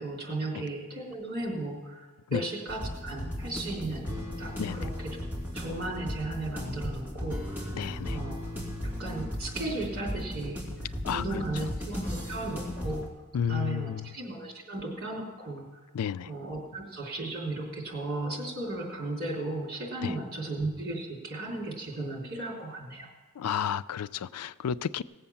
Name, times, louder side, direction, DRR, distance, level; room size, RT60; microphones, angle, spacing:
voice 1, 0.0-5.2 5.5-7.7 8.1-8.4 8.8-13.1 13.5-15.7 16.3-23.1, right 2 dB, 45° right, -1 dB, 3.6 m, -35 dB
sound 1, 2.7-13.1, equal, 10° right, 2.6 m, -36 dB
voice 2, 7.7-8.2 11.0-11.2 13.3-14.1 15.9-16.3 20.0-20.1 23.4-25.0, left 8 dB, 90° left, 16 dB, 0.4 m, -31 dB
18.0 x 7.8 x 7.1 m, 1.3 s
head